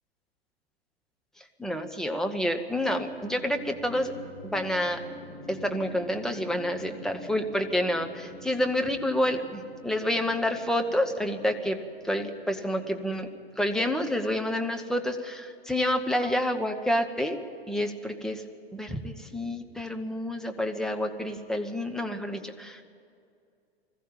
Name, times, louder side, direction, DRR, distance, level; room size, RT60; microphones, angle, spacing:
voice 1, 1.4-4.1 4.4-5.0 5.5-13.3 13.6-17.4 17.7-18.4 18.7-22.8, left 1 dB, ahead, 4 dB, 1.1 m, -29 dB
sound 1, 2.7-14.9, left 2 dB, 20° left, 5.2 m, -47 dB
20.0 x 14.5 x 9.1 m, 2.4 s
figure-of-eight pair, 95°, 31 cm